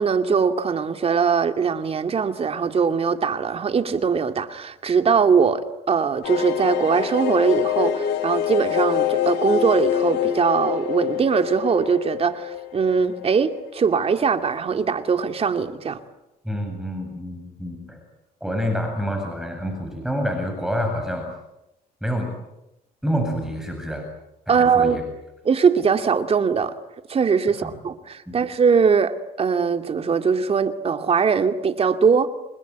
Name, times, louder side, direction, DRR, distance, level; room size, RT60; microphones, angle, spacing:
voice 1, 0.0-16.0 24.5-25.0 25.4-26.8 27.1-32.3, right 6 dB, 35° right, 8 dB, 2.5 m, -21 dB
sound 1, 6.2-13.7 14.0-14.1 14.3-14.4, left 11 dB, 90° left, 3.8 m, -25 dB
voice 2, 16.4-18.0 18.4-21.3 22.0-22.3 23.0-24.1 24.5-25.0 27.6-27.7 28.3-28.4, equal, 5° right, 4 dB, 7.9 m, -27 dB
29.0 x 21.5 x 9.4 m, 0.89 s
cardioid pair, 110°, 17 cm